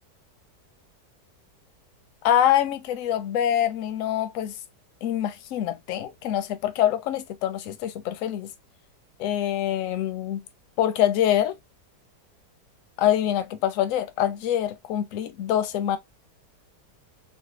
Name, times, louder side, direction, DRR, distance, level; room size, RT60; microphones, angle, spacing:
voice 1, 2.2-4.5 5.0-8.5 9.2-10.4 10.8-11.5 13.0-16.0, left 11 dB, 70° left, 0.8 m, -25 dB
3.3 x 2.3 x 2.8 m
omnidirectional pair, 1.8 m